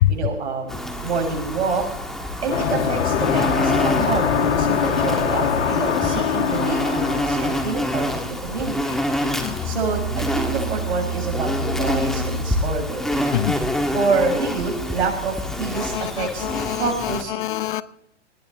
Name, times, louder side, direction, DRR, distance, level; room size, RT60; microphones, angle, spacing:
voice 1, 0.1-1.9 2.4-9.0 9.6-13.5 13.9-16.5 16.8-17.3, right 4 dB, 70° right, 1 dB, 6.9 m, -27 dB
Insect, 0.7-17.2, equal, ahead, 1.4 m, -27 dB
sound 1, 2.5-8.0, left 7 dB, 75° left, 2.3 m, -22 dB
Musical instrument, 9.4-12.9, right 2 dB, 20° left, 1.1 m, -29 dB
voice 2, 15.8-17.1 17.4-17.8, left 13 dB, 45° left, 17 dB, 0.7 m, -24 dB
19.5 x 16.5 x 3.3 m, 0.76 s
hypercardioid pair, 140°, 36 cm